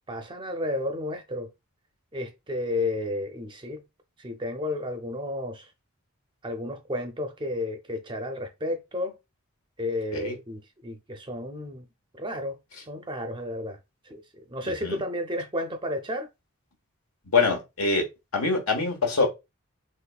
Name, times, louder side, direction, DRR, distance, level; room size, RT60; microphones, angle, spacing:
voice 1, 0.0-1.5 2.1-3.8 4.2-5.7 6.4-9.2 9.8-11.9 12.2-12.6 12.9-13.8 14.1-14.2 14.5-16.3, left 1 dB, 20° right, 0.5 m, -32 dB
voice 2, 14.6-15.0 17.3-18.0 18.3-19.3, left 4 dB, 75° left, 1.3 m, -24 dB
4.1 x 3.1 x 2.3 m
head